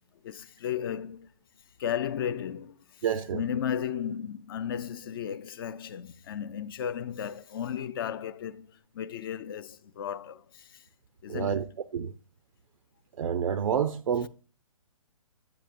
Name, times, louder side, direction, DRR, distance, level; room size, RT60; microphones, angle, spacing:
voice 1, 0.2-1.3 1.8-2.8 3.3-8.7 8.9-10.7 11.2-11.7, left 9 dB, 40° left, 0.4 m, -34 dB
voice 2, 3.0-3.4 11.3-11.7 11.9-12.1 13.2-14.3, right 8 dB, 65° right, 0.5 m, -28 dB
9.7 x 7.7 x 2.5 m
hypercardioid pair, 140°, 19 cm